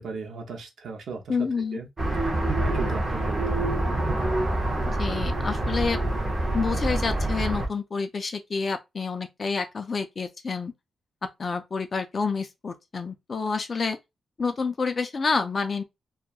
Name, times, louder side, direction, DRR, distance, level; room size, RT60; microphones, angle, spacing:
voice 1, 0.0-1.9 2.1-3.7, right 4 dB, 65° right, 0.6 m, -37 dB
voice 2, 1.3-1.8 4.9-6.0 6.5-10.7 11.4-14.0 14.4-15.8, left 4 dB, 30° left, 0.3 m, -28 dB
sound 1, 2.0-7.7, right 1 dB, 20° right, 0.6 m, -26 dB
2.8 x 2.2 x 2.3 m
wide cardioid pair, 180°, 0 cm